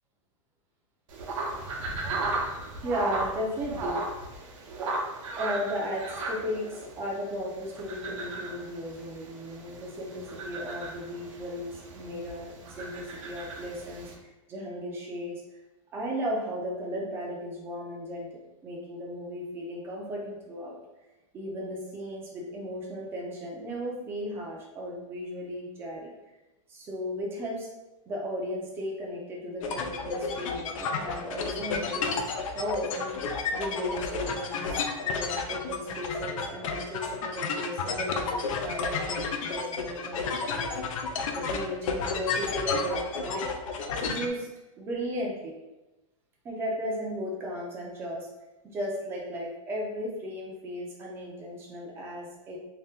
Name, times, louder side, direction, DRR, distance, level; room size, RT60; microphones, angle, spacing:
sound 1, 1.1-14.1, right 2 dB, 70° right, 0.7 m, -36 dB
voice 1, 2.8-4.0 5.4-15.4 15.9-20.8 21.3-26.1 26.7-27.7 28.1-32.2 32.5-33.2 33.5-40.8 41.3-43.5 44.0-44.5 44.8-45.5 46.4-48.3 48.6-52.6, equal, 15° right, -2 dB, 0.4 m, -35 dB
sound 2, 29.6-44.3, left 4 dB, 85° left, 0.4 m, -32 dB
2.8 x 2.1 x 3.5 m, 1.0 s
supercardioid pair, 170°, 17 cm